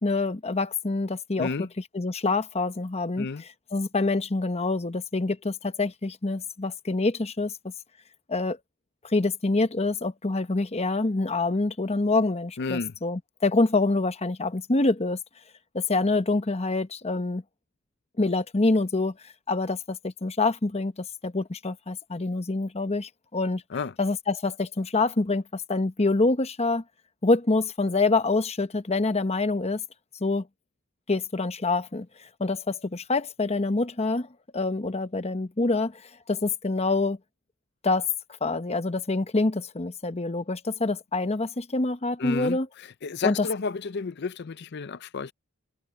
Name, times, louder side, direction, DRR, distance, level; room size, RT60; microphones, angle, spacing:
voice 1, 0.0-1.7 1.9-3.3 3.7-7.6 8.3-8.6 9.0-15.2 15.7-17.4 18.2-23.6 24.0-26.8 27.2-29.8 30.2-30.5 31.1-32.1 32.4-34.3 34.5-36.0 36.3-37.2 37.8-38.1 38.4-42.7 43.2-43.5, left 3 dB, 30° left, 0.9 m, -26 dB
voice 2, 1.4-1.7 3.2-3.4 12.6-12.9 23.7-23.9 42.2-42.6 43.0-45.3, left 4 dB, 55° left, 0.6 m, -31 dB
open air
head